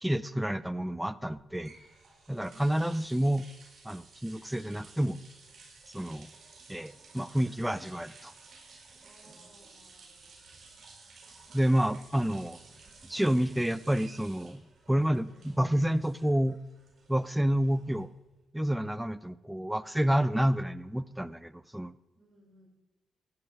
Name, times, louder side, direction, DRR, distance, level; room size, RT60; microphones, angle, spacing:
voice 1, 0.0-1.7 2.3-3.4 3.8-5.2 5.9-6.3 6.7-8.3 11.5-12.6 13.1-14.6 14.9-16.6 17.1-18.1 18.5-21.9, equal, 5° right, 18 dB, 0.6 m, -29 dB
sound 1, 1.4-18.3, right 4 dB, 55° right, 4.8 m, -55 dB
voice 2, 9.0-10.1 22.1-22.7, equal, 30° right, -1 dB, 5.7 m, -61 dB
15.5 x 10.0 x 4.8 m, 1.1 s
hypercardioid pair, 45°, 0 cm